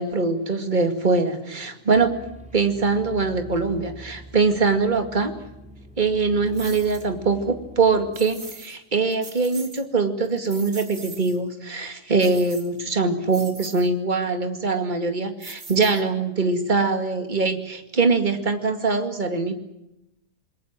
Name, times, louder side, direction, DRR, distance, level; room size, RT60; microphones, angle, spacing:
voice 1, 0.0-2.1 2.5-5.3 6.0-19.5, right 4 dB, 30° right, 7 dB, 2.4 m, -23 dB
sound 1, 1.9-8.1, equal, 5° right, 4.1 m, -44 dB
sound 2, 6.5-7.1 8.1-8.8 9.1-9.8 10.2-11.4 12.2-12.9 13.3-13.9 15.4-16.3, right 3 dB, 55° right, 3.4 m, -41 dB
28.0 x 21.5 x 7.6 m, 0.88 s
omnidirectional pair, 1.7 m